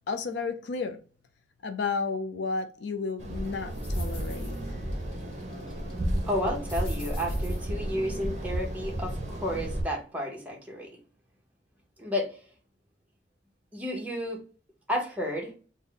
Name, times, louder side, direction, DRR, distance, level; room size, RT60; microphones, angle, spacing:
voice 1, 0.1-1.0 1.6-4.6, left 4 dB, 75° left, 0.4 m, -32 dB
sound 1, 3.2-9.8, right 1 dB, 40° right, 0.7 m, -32 dB
sound 2, 3.4-9.2, equal, 30° left, 1.2 m, -46 dB
voice 2, 6.2-10.9 12.0-12.4 13.7-14.4 14.9-15.5, left 1 dB, 10° right, 0.8 m, -32 dB
3.5 x 2.1 x 3.8 m
head